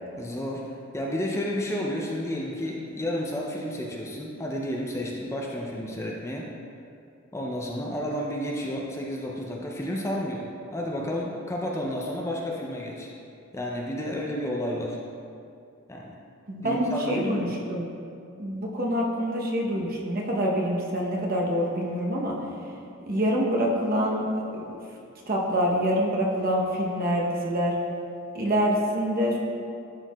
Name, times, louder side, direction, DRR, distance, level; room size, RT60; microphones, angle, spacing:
voice 1, 0.2-6.5 7.3-13.1 13.5-15.0 15.9-16.1 16.6-17.5, equal, 15° left, -2 dB, 0.4 m, -31 dB
voice 2, 16.5-17.9 18.4-22.3 23.1-24.7 25.3-27.7 28.3-29.4, equal, 45° right, -2 dB, 0.8 m, -26 dB
11.5 x 4.6 x 2.3 m, 2.5 s
head